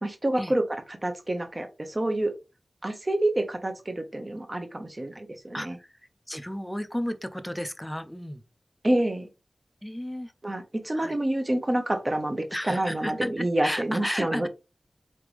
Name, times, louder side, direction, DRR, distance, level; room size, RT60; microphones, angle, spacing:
voice 1, 0.0-2.3 2.8-5.8 8.8-9.3 10.4-14.5, right 1 dB, 35° right, 1.0 m, -28 dB
voice 2, 5.5-5.9 6.3-8.4 9.8-10.3 10.9-11.2 12.5-14.5, equal, 5° left, 0.6 m, -33 dB
4.0 x 3.3 x 3.3 m
wide cardioid pair, 50°, 0 cm